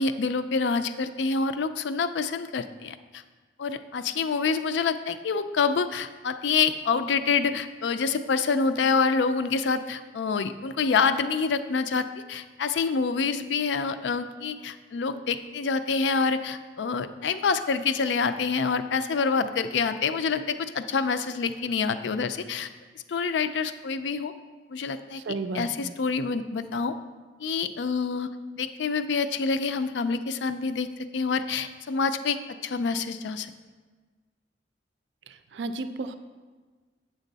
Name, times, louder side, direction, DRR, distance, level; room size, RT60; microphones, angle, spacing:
voice 1, 0.0-3.2 3.6-22.7 23.1-24.3 24.7-25.2 25.5-27.0 27.4-28.3 28.6-33.5, left 5 dB, 85° left, 11 dB, 0.4 m, -27 dB
voice 2, 25.3-25.9 35.5-36.1, right 3 dB, 85° right, 10 dB, 0.4 m, -32 dB
8.2 x 6.3 x 4.0 m, 1.4 s
head